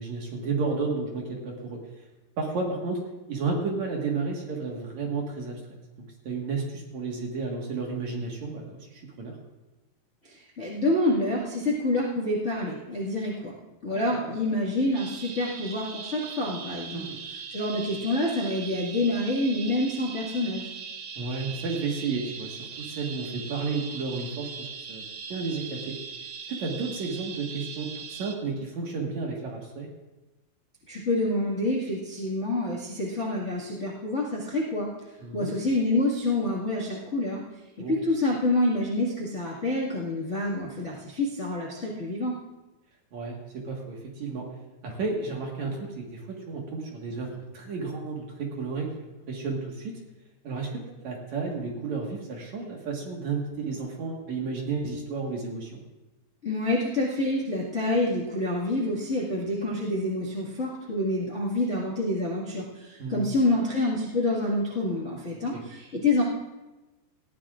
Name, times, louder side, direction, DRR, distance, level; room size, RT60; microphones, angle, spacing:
voice 1, 0.0-1.8 2.4-3.0 3.3-5.6 6.2-9.4 13.9-14.3 16.9-17.2 21.2-25.0 25.3-26.0 26.5-29.9 35.2-35.5 37.8-38.0 43.1-44.5 44.8-48.9 49.3-49.9 50.4-55.8 63.0-63.3 65.3-65.6, right 4 dB, 55° right, -1 dB, 2.4 m, -32 dB
voice 2, 10.2-13.5 13.8-20.7 30.9-34.9 35.3-37.4 37.9-42.3 56.4-66.2, left 1 dB, 65° left, -6 dB, 0.6 m, -27 dB
sound 1, 14.9-28.4, right 6 dB, 90° right, 1.4 m, -40 dB
19.5 x 15.0 x 2.5 m, 1.1 s
omnidirectional pair, 4.8 m